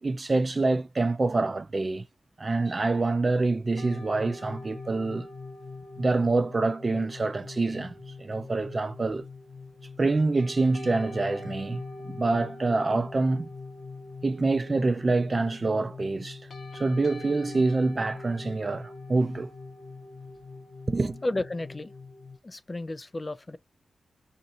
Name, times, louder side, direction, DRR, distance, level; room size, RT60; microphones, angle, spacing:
voice 1, 0.0-2.0 2.4-5.3 6.0-7.9 8.2-9.3 10.0-13.5 14.2-16.4 16.7-19.5 20.9-21.2, right 3 dB, 35° right, 0.5 m, -26 dB
sound 1, 3.8-22.4, left 3 dB, 65° left, 0.7 m, -42 dB
voice 2, 21.2-21.9 22.4-23.6, left 2 dB, 25° left, 0.4 m, -32 dB
2.6 x 2.5 x 4.2 m
wide cardioid pair, 95°, 0 cm